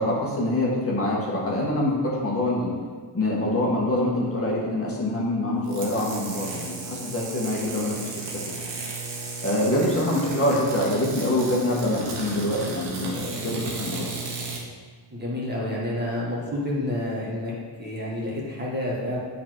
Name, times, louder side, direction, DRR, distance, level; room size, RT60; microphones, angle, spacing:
voice 1, 0.0-2.7 3.1-8.1 8.5-8.6 9.4-14.1, left 1 dB, 30° left, -4 dB, 1.7 m, -25 dB
sound 1, 5.6-14.6, right 3 dB, 80° right, 1.4 m, -34 dB
voice 2, 15.1-17.5 17.8-19.2, left 1 dB, 25° right, -5 dB, 1.7 m, -29 dB
7.2 x 4.2 x 4.7 m, 1.5 s
cardioid pair, 100°, 42 cm